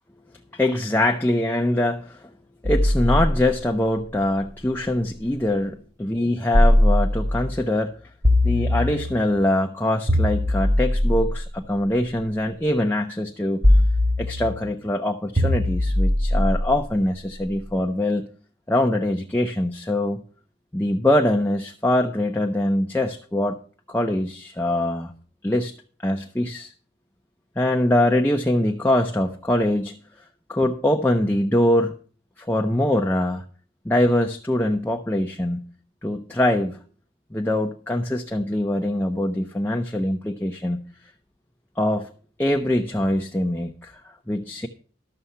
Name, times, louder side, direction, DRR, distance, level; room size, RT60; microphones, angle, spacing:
voice 1, 0.5-2.3 2.6-8.0 8.4-13.6 14.2-18.3 18.7-20.2 20.7-23.6 23.9-25.1 25.4-25.7 26.0-26.7 27.6-30.0 30.5-31.9 32.4-33.4 33.8-35.6 36.0-36.8 37.3-40.8 41.8-42.1 42.4-44.0 44.3-44.7, left 1 dB, 10° left, 2 dB, 0.6 m, -23 dB
sound 1, 2.6-5.4 6.5-7.6 8.2-9.4 10.1-12.3 13.6-14.7 15.4-17.5, left 1 dB, 40° right, 2.5 m, -21 dB
13.0 x 6.8 x 5.6 m, 0.42 s
head